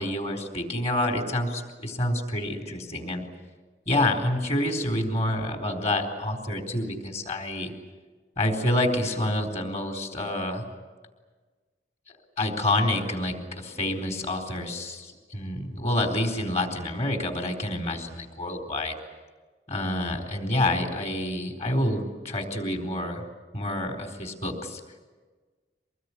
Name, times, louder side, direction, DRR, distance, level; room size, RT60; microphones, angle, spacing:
voice 1, 0.0-3.2 3.9-7.7 8.4-10.7 12.1-18.9 19.7-23.2 23.5-24.8, left 1 dB, 40° left, 3 dB, 4.1 m, -28 dB
25.0 x 20.5 x 9.9 m, 1.4 s
head